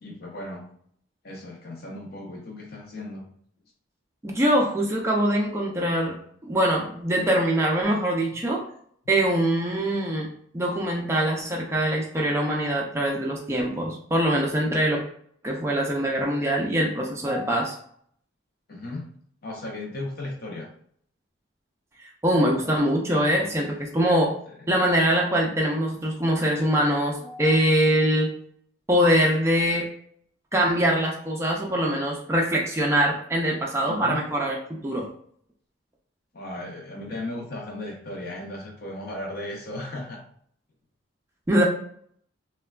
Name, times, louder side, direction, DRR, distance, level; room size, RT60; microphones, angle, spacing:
voice 1, 0.0-0.7 1.2-3.3 18.7-19.1 19.4-20.7 33.9-34.2 36.3-40.2, left 1 dB, 50° left, 0 dB, 0.5 m, -36 dB
voice 2, 4.2-6.2 6.4-8.6 9.1-10.3 10.5-15.0 15.4-17.7 22.0-24.3 24.7-28.3 28.9-29.9 30.5-35.1 41.5-41.6, equal, 15° right, -1 dB, 0.3 m, -23 dB
3.2 x 2.1 x 2.3 m, 0.63 s
head